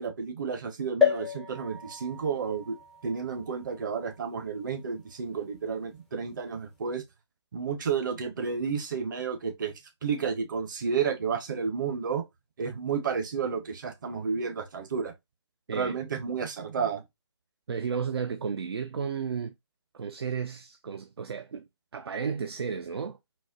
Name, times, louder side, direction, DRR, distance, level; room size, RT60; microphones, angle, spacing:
voice 1, 0.0-2.8 3.0-7.0 7.5-9.7 10.0-12.2 12.6-15.1 15.7-17.0, right 6 dB, 45° right, 0.8 m, -31 dB
sound 1, 1.0-4.7 5.3-5.4 5.6-5.7, left 7 dB, ahead, 0.4 m, -31 dB
voice 2, 15.7-16.0 17.7-19.5 19.9-21.7 21.9-23.2, right 6 dB, 60° right, 0.4 m, -33 dB
4.1 x 2.1 x 2.3 m
figure-of-eight pair, 145°, 15 cm